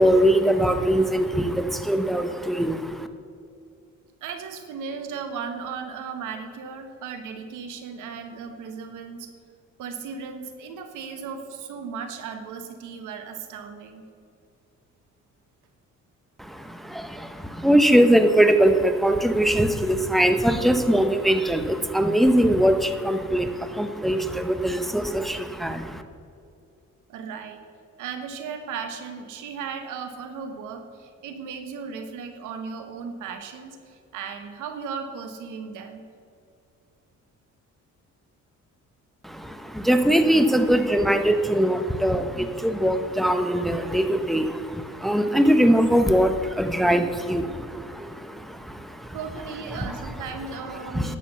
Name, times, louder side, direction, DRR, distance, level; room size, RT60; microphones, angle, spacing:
voice 1, 0.0-3.1 16.4-26.0 39.2-49.2 50.8-51.2, right 1 dB, ahead, 8 dB, 0.9 m, -21 dB
voice 2, 4.2-9.3 9.8-14.0 27.1-27.6 28.0-36.1 49.1-51.2, right 6 dB, 90° right, 7 dB, 1.3 m, -36 dB
11.0 x 7.7 x 6.9 m, 2.4 s
cardioid pair, 90°, 30 cm